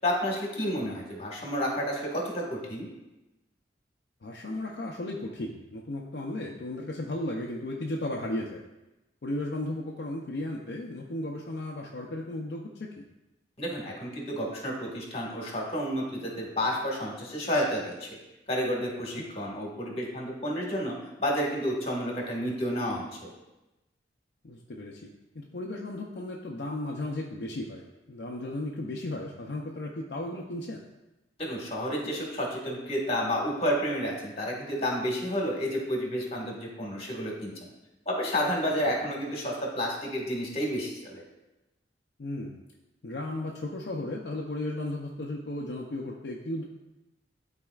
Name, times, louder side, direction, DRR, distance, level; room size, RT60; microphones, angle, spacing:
voice 1, 0.0-2.9 13.6-18.1 18.5-23.3 31.4-37.5 38.0-41.2, equal, 30° left, -2 dB, 1.6 m, -30 dB
voice 2, 4.2-8.6 9.2-13.0 19.1-19.2 24.4-25.1 25.3-30.8 38.8-38.9 42.2-42.6 43.0-46.6, left 1 dB, 60° left, -1 dB, 0.5 m, -35 dB
12.0 x 4.2 x 2.4 m, 1.0 s
head